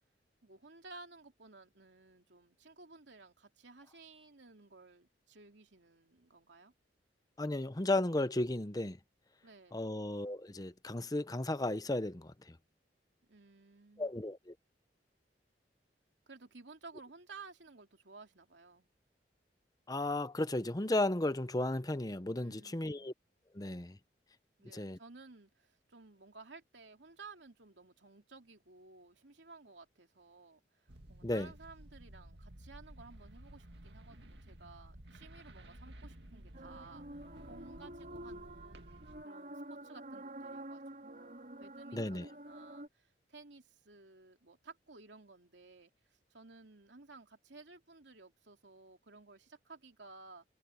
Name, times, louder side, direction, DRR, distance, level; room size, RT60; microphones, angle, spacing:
voice 1, 0.4-6.7 9.4-9.8 13.3-14.1 16.3-18.9 22.4-23.1 24.6-50.4, right 3 dB, 90° right, 2.9 m, -56 dB
voice 2, 7.4-9.0 9.7-12.3 14.0-14.5 19.9-23.1 23.5-24.0 24.7-25.0 31.2-31.5 41.9-42.3, left 2 dB, 20° left, 0.8 m, -34 dB
sound 1, 30.9-39.2, right 1 dB, 70° right, 2.2 m, -54 dB
sound 2, 36.5-42.9, right 1 dB, 50° right, 3.2 m, -48 dB
head